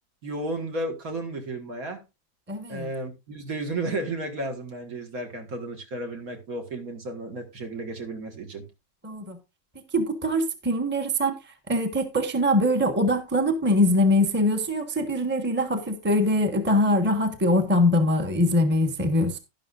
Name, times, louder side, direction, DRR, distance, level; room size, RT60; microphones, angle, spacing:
voice 1, 0.2-2.0 2.7-8.7, right 2 dB, 55° right, 2.1 m, -33 dB
voice 2, 2.5-2.9 9.0-9.4 9.9-11.3 11.7-19.4, left 1 dB, 5° right, 1.2 m, -23 dB
11.5 x 11.5 x 2.5 m
omnidirectional pair, 1.8 m